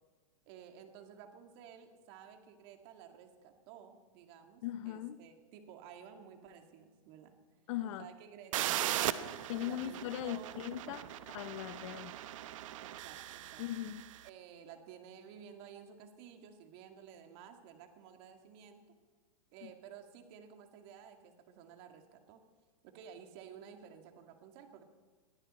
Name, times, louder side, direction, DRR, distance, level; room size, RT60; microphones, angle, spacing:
voice 1, 0.5-7.3 8.0-10.7 12.8-13.6 14.2-18.8 19.5-22.4 22.8-24.8, right 8 dB, 45° right, 5 dB, 2.1 m, -53 dB
voice 2, 4.6-5.2 7.7-8.1 9.5-12.1 13.6-14.0 19.6-19.7, left 12 dB, 55° left, 11 dB, 0.9 m, -39 dB
sound 1, 8.5-14.2, right 13 dB, 60° right, 0.9 m, -39 dB
21.0 x 15.5 x 4.3 m, 1.4 s
hypercardioid pair, 145°, 19 cm